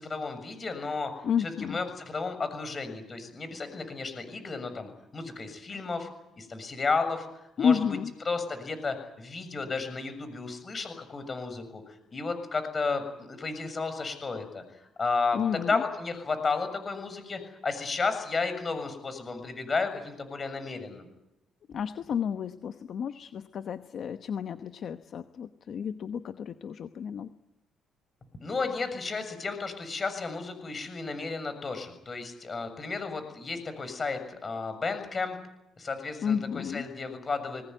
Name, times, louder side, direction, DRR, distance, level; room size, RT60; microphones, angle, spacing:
voice 1, 0.0-6.1 6.4-7.8 8.2-21.1 28.4-35.4 35.8-37.6, left 4 dB, 35° left, 10 dB, 6.8 m, -33 dB
voice 2, 1.2-1.8 7.6-8.1 15.3-15.8 21.7-27.3 36.2-36.8, left 7 dB, 55° left, 9 dB, 1.0 m, -31 dB
22.5 x 19.5 x 9.3 m, 0.87 s
cardioid pair, 90°, 0 cm